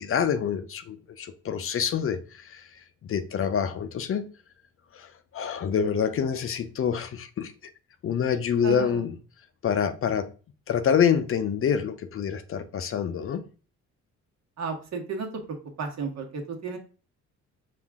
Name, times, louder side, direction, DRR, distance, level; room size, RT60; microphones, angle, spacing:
voice 1, 0.0-2.7 3.0-4.3 4.9-7.5 8.0-9.2 9.6-10.3 10.7-13.4, left 7 dB, 45° left, 0.5 m, -26 dB
voice 2, 8.6-9.0 14.6-15.4 15.8-16.8, right 5 dB, 60° right, 1.3 m, -33 dB
5.6 x 2.5 x 3.5 m
cardioid pair, 90°, 30 cm